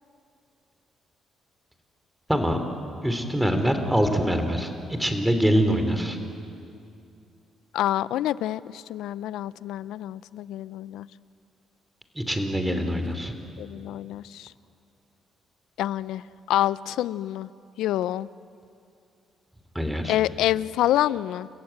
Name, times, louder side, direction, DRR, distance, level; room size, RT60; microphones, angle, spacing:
voice 1, 2.3-2.7 3.0-6.2 12.1-13.3 19.7-20.2, equal, 5° right, 7 dB, 2.9 m, -24 dB
voice 2, 7.7-11.1 13.6-14.5 15.8-16.2 16.5-17.5 17.8-18.3 20.1-21.5, left 13 dB, 85° left, 19 dB, 0.4 m, -27 dB
30.0 x 15.0 x 8.8 m, 2.5 s
cardioid pair, 90°, 0 cm